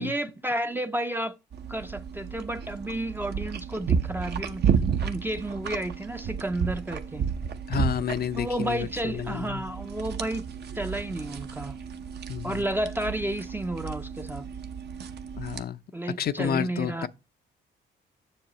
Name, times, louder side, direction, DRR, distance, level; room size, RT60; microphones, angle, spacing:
voice 1, 0.0-1.4 1.7-4.6 5.0-7.3 8.4-10.5 10.8-11.8 12.4-14.5 15.9-17.1, right 1 dB, 10° right, 0.5 m, -31 dB
sound 1, 1.5-15.6, right 7 dB, 55° right, 0.8 m, -32 dB
voice 2, 7.7-9.6 12.3-12.7 15.4-15.8 16.2-17.1, left 9 dB, 50° left, 0.5 m, -30 dB
7.4 x 6.8 x 2.9 m
cardioid pair, 90°, 20 cm